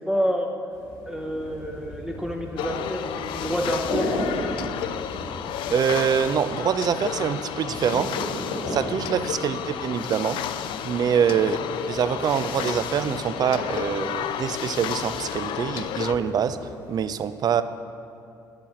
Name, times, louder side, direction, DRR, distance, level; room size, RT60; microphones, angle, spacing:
voice 1, 0.1-0.5 1.0-4.7 11.4-11.5, equal, 5° right, 1 dB, 0.8 m, -29 dB
sound 1, 0.7-17.0, left 1 dB, 85° left, 1.5 m, -37 dB
sound 2, 2.6-16.1, left 10 dB, 65° left, 0.3 m, -32 dB
voice 2, 5.7-8.1 8.7-10.4 10.8-11.6 11.9-16.6 16.9-17.6, right 8 dB, 45° right, 12 dB, 0.4 m, -24 dB
8.8 x 4.2 x 5.8 m, 2.5 s
supercardioid pair, 65°, 9 cm